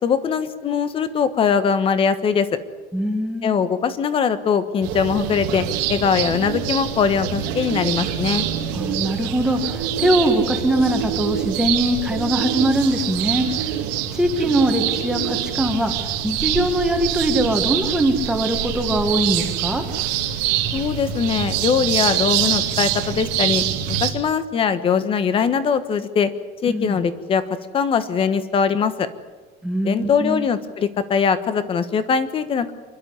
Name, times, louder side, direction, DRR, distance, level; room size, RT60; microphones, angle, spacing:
voice 1, 0.0-2.6 3.4-8.5 20.7-26.3 26.6-27.4 27.7-29.1 29.8-32.7, left 6 dB, 25° left, 12 dB, 1.3 m, -21 dB
voice 2, 2.9-3.6 8.7-13.5 14.1-15.9 16.2-19.8 26.7-27.0 29.6-30.5, right 1 dB, 5° right, 3 dB, 1.9 m, -22 dB
sound 1, 4.8-24.1, right 10 dB, 90° right, 2.8 m, -25 dB
27.0 x 12.0 x 9.7 m, 1.3 s
cardioid pair, 170°, 21 cm